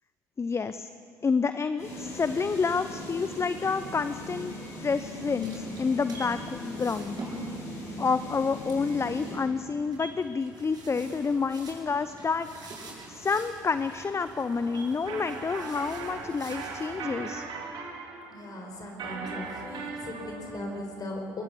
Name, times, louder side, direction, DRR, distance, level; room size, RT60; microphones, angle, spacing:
voice 1, 0.4-0.9 1.2-4.5 4.8-7.2 8.0-12.5 13.1-17.4, left 5 dB, 30° left, 12 dB, 0.7 m, -29 dB
sound 1, 1.8-9.3, left 1 dB, 85° left, 7.3 m, -39 dB
sound 2, 5.4-17.3, right 3 dB, 45° right, 7.5 m, -46 dB
sound 3, 15.1-20.8, right 4 dB, 65° right, 3.2 m, -39 dB
voice 2, 18.3-21.4, left 1 dB, 45° left, 2 dB, 5.1 m, -38 dB
21.0 x 19.5 x 7.1 m, 2.5 s
hypercardioid pair, 50°, 9 cm